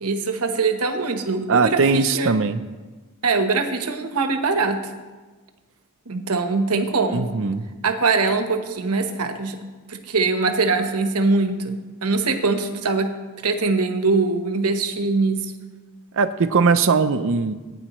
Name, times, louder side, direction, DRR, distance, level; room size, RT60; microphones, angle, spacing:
voice 1, 0.0-2.3 3.2-4.8 6.1-7.3 7.8-9.6 9.9-13.1 13.4-15.4, right 3 dB, 80° right, 6 dB, 1.1 m, -22 dB
voice 2, 1.5-2.6 7.1-7.7 16.1-17.5, right 4 dB, 60° right, 10 dB, 0.6 m, -20 dB
18.5 x 9.9 x 3.1 m, 1.3 s
head